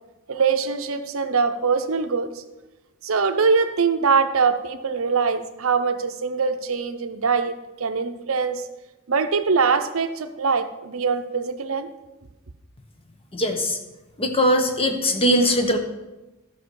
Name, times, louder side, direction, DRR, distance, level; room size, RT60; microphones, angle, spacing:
voice 1, 0.3-2.3 3.0-7.5 7.8-8.6 9.1-11.9, right 5 dB, 70° right, 8 dB, 0.7 m, -22 dB
voice 2, 13.3-13.8 14.2-15.8, equal, 25° left, 5 dB, 1.0 m, -20 dB
13.0 x 6.3 x 4.7 m, 1.1 s
head